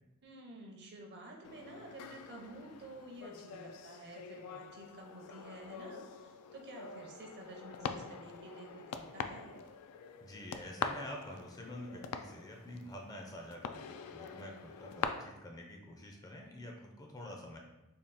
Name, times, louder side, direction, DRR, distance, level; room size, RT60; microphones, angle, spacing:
voice 1, 0.2-9.6, right 2 dB, 50° right, 1 dB, 0.6 m, -51 dB
sound 1, 1.4-15.0, left 7 dB, 85° left, 0.3 m, -45 dB
voice 2, 10.2-17.6, left 1 dB, 15° left, 1 dB, 0.4 m, -47 dB
3.5 x 2.3 x 4.0 m, 0.97 s
head